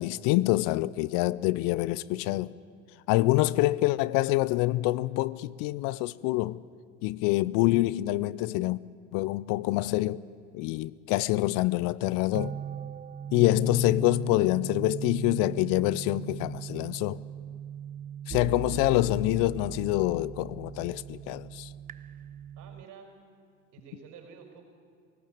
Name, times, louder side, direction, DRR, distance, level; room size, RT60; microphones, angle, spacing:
voice 1, 0.0-2.5 3.1-6.6 7.0-8.8 9.1-10.2 10.5-12.5 13.3-17.2 18.3-21.7, left 18 dB, 60° left, 0.6 m, -26 dB
sound 1, 12.3-22.8, right 9 dB, 25° right, 0.5 m, -39 dB
voice 2, 18.4-18.8 22.6-23.1 23.7-24.6, right 6 dB, 55° right, 5.1 m, -50 dB
17.5 x 17.0 x 8.6 m
hypercardioid pair, 75°, 37 cm